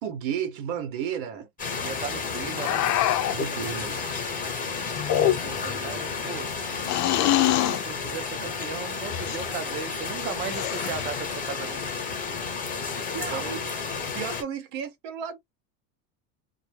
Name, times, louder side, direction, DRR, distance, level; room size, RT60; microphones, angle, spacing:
voice 1, 0.0-1.5 3.3-4.0 13.1-13.7 14.1-15.4, right 8 dB, 70° right, 1.0 m, -33 dB
sound 1, 1.6-14.4, left 5 dB, 20° left, 1.0 m, -32 dB
voice 2, 1.8-2.9 5.1-6.5 7.4-11.9 13.3-13.5, right 7 dB, 25° right, 0.4 m, -37 dB
sound 2, 2.6-3.5 5.0-5.7 6.8-7.8 9.1-9.5 10.4-11.1, left 13 dB, 40° left, 0.4 m, -25 dB
2.1 x 2.1 x 3.3 m
supercardioid pair, 115°, 45 cm